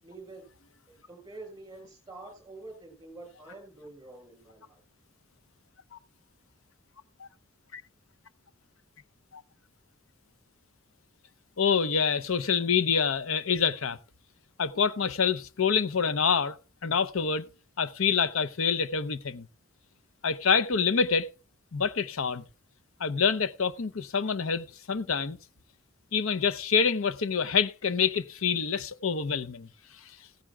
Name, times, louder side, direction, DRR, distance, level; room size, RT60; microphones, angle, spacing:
voice 1, 0.0-0.5 0.9-4.8, right 2 dB, 15° right, 6.3 m, -47 dB
voice 2, 11.6-14.0 14.6-16.6 16.8-17.5 17.8-19.5 20.2-21.3 21.7-22.4 23.0-25.4 26.1-29.7, left 6 dB, 90° left, 0.7 m, -26 dB
16.0 x 15.0 x 2.3 m
head